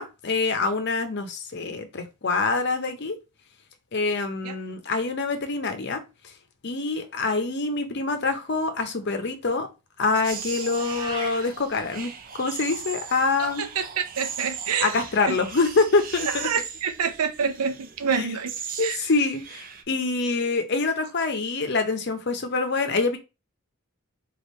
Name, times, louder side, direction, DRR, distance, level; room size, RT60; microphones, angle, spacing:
voice 1, 0.0-3.2 3.9-6.3 6.6-9.7 10.0-13.7 14.8-16.5 18.1-18.3 18.8-23.2, left 3 dB, 50° left, 0.7 m, -25 dB
sound 1, 10.2-19.8, right 7 dB, 40° right, 0.5 m, -38 dB
Meow, 10.7-11.5, right 2 dB, 20° right, 1.0 m, -36 dB
voice 2, 13.4-14.9 15.2-15.4 16.3-18.5 18.8-19.0, right 6 dB, 90° right, 0.6 m, -27 dB
3.3 x 2.5 x 4.2 m
head